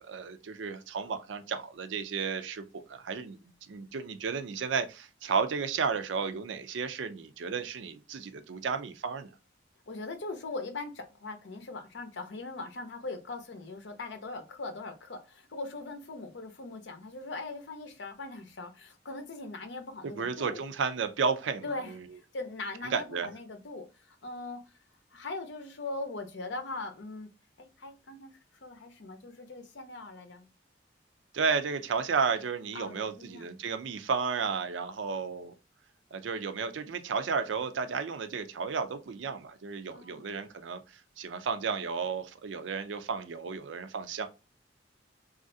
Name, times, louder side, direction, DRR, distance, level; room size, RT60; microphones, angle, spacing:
voice 1, 0.0-3.4 3.7-9.3 20.0-22.0 22.8-23.3 31.3-35.5 36.1-44.3, right 5 dB, 90° right, 0.4 m, -33 dB
voice 2, 9.9-20.6 21.6-24.6 25.1-27.3 27.6-28.3 28.6-30.5 32.7-33.5 39.9-40.3, left 3 dB, 75° left, 0.7 m, -40 dB
3.1 x 2.4 x 2.6 m
head